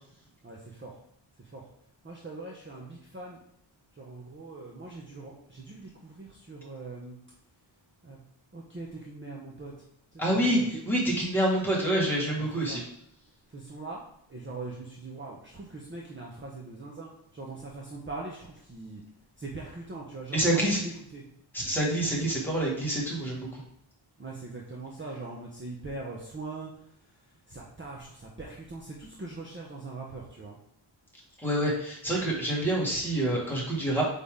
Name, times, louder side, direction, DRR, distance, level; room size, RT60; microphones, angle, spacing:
voice 1, 0.4-1.0 1.4-1.7 2.0-3.4 3.9-7.2 8.0-8.2 8.5-9.7 10.1-10.8 12.4-12.8 13.5-14.0 14.3-19.0 19.4-21.2 24.2-30.6, right 3 dB, 25° right, -2 dB, 0.8 m, -41 dB
voice 2, 10.2-12.8 20.3-20.8 21.5-23.6 31.4-34.0, right 1 dB, 5° left, -5 dB, 1.9 m, -27 dB
8.3 x 3.6 x 3.7 m, 0.74 s
wide cardioid pair, 165°, 48 cm